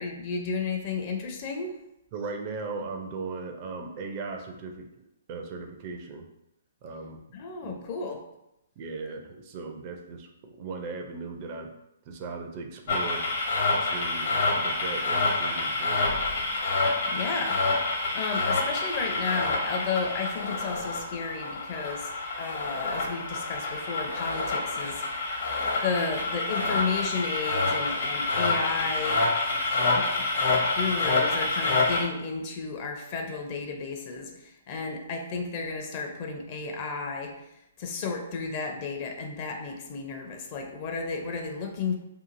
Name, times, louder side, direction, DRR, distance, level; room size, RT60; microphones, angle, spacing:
voice 1, 0.0-1.7 7.3-8.2 17.1-22.1 22.4-25.3 25.8-29.2 29.6-30.1 30.7-37.3 37.8-41.9, left 4 dB, 40° left, 2 dB, 0.5 m, -33 dB
voice 2, 2.1-4.9 5.3-6.3 6.8-7.2 7.6-7.9 8.8-11.7 12.1-13.3 13.7-16.2, right 4 dB, 40° right, 3 dB, 0.4 m, -38 dB
sound 1, 12.9-32.0, left 3 dB, 60° left, 0.9 m, -27 dB
2.8 x 2.5 x 2.5 m, 0.84 s
hypercardioid pair, 130°, 0 cm